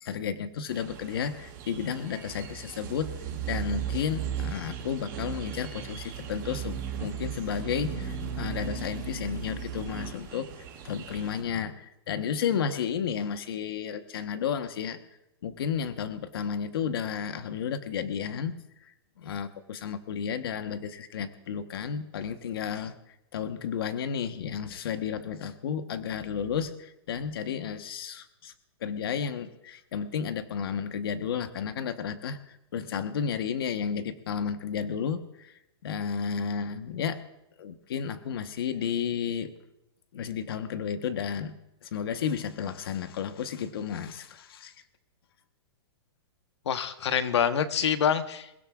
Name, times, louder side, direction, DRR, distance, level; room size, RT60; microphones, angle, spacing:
voice 1, 0.0-3.2 3.5-10.5 10.8-15.0 15.4-18.5 18.8-22.9 23.3-28.5 28.8-37.2 37.6-39.5 40.1-44.7, left 7 dB, 60° left, 9 dB, 1.1 m, -32 dB
sound 1, 0.7-11.4, right 9 dB, 20° right, 6.7 m, -37 dB
voice 2, 46.7-48.6, left 8 dB, 85° left, 9 dB, 1.1 m, -26 dB
27.5 x 16.5 x 2.4 m, 0.89 s
hypercardioid pair, 175°, 14 cm